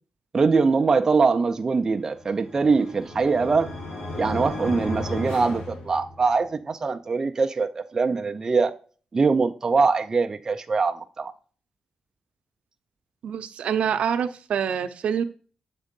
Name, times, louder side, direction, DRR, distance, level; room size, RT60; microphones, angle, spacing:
voice 1, 0.3-3.7 4.2-8.7 9.1-11.3, right 4 dB, 25° right, 0.4 m, -22 dB
sound 1, 2.1-6.4, left 2 dB, 65° left, 2.6 m, -35 dB
voice 2, 13.2-15.2, right 8 dB, 75° right, 0.6 m, -26 dB
7.4 x 3.6 x 5.2 m
wide cardioid pair, 165°, 2 cm